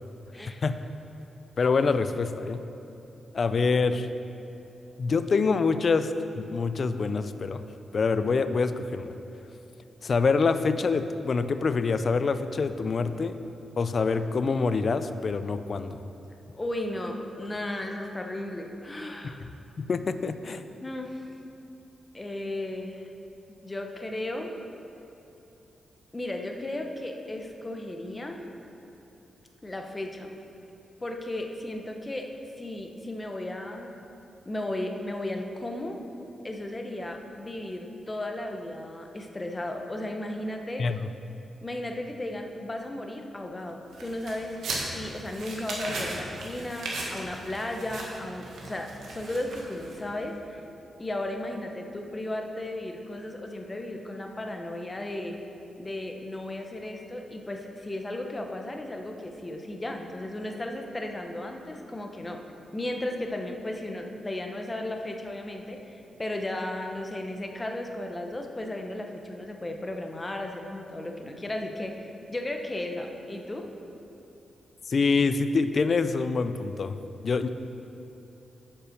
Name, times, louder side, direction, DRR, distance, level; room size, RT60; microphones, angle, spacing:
voice 1, 1.6-2.6 3.3-4.1 5.0-7.6 7.9-9.1 10.0-13.4 13.8-16.0 19.8-20.6 40.8-41.0 74.9-77.0 77.2-77.5, left 4 dB, 45° left, 11 dB, 0.4 m, -25 dB
voice 2, 16.5-19.4 20.8-21.3 22.1-23.1 23.6-24.5 26.1-28.5 29.6-30.3 31.0-32.3 32.6-33.9 34.4-36.0 36.4-40.9 41.6-44.6 44.9-50.6 51.0-55.4 55.8-62.4 62.7-73.6, left 1 dB, 20° left, 3 dB, 0.8 m, -35 dB
sound 1, 43.9-50.2, right 2 dB, 85° right, 1.5 m, -37 dB
8.4 x 5.6 x 6.5 m, 2.9 s
cardioid pair, 100°, 0 cm